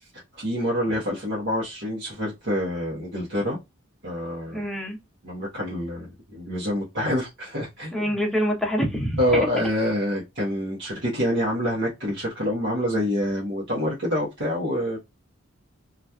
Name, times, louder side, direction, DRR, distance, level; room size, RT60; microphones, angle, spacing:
voice 1, 0.4-3.6 4.0-4.6 5.2-8.2 9.2-15.0, equal, 60° right, 0.9 m, -26 dB
voice 2, 4.5-5.0 7.9-9.2, equal, ahead, 0.7 m, -25 dB
2.9 x 2.4 x 2.2 m
head